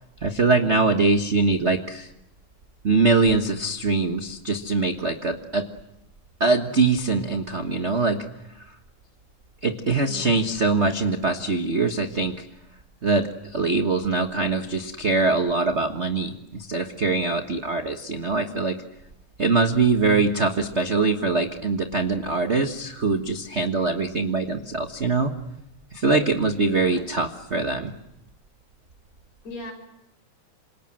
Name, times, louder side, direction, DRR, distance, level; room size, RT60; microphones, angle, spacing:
voice 1, 0.2-2.1 2.8-5.7 6.4-8.2 9.6-12.5 13.0-18.8 19.4-25.3 25.9-27.9, right 3 dB, 50° right, 6 dB, 0.8 m, -23 dB
voice 2, 10.1-10.5 26.7-27.1 29.4-29.7, left 1 dB, 60° left, 3 dB, 7.8 m, -38 dB
28.0 x 27.5 x 7.6 m, 0.83 s
omnidirectional pair, 3.5 m